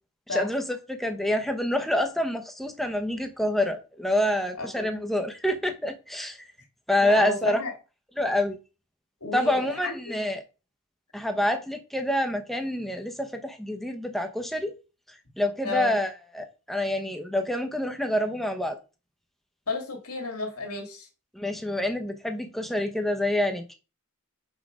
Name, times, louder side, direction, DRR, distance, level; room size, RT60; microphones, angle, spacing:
voice 1, 0.3-6.4 6.9-7.6 8.2-8.6 9.3-10.4 11.1-14.7 15.4-18.8 21.3-23.7, left 1 dB, ahead, 0.8 m, -27 dB
voice 2, 7.0-7.7 9.2-10.2 15.6-15.9 19.7-21.1, left 3 dB, 80° left, 1.9 m, -32 dB
6.2 x 4.9 x 4.9 m
head